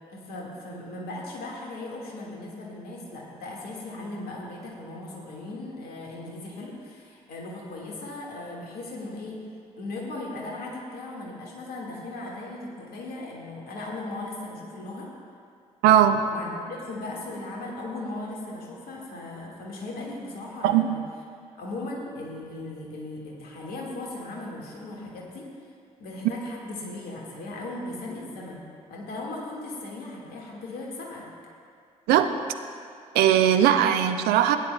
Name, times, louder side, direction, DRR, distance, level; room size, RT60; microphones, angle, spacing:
voice 1, 0.1-9.4 9.8-15.1 16.3-21.0 21.6-25.4 26.0-31.2, left 2 dB, 60° left, -3 dB, 1.9 m, -37 dB
voice 2, 15.8-16.2 20.6-20.9 32.1-32.3 33.1-34.6, right 10 dB, 60° right, 8 dB, 0.6 m, -19 dB
17.5 x 9.8 x 2.3 m, 2.3 s
figure-of-eight pair, 40°, 18 cm